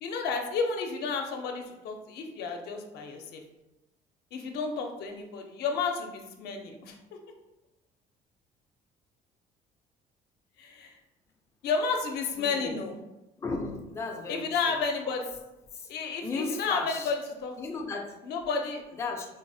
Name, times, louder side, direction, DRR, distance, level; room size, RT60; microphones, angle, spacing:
voice 1, 0.0-3.4 4.3-7.0 10.6-10.9 11.6-13.0 14.3-15.3 15.9-17.8 18.2-19.0, left 4 dB, 75° left, 3 dB, 0.5 m, -32 dB
voice 2, 12.4-12.7 13.4-14.5 15.1-15.2 16.2-17.1 17.6-18.2 19.0-19.3, left 3 dB, 15° left, 2 dB, 0.3 m, -34 dB
3.7 x 2.0 x 2.6 m, 0.97 s
cardioid pair, 110°, 17 cm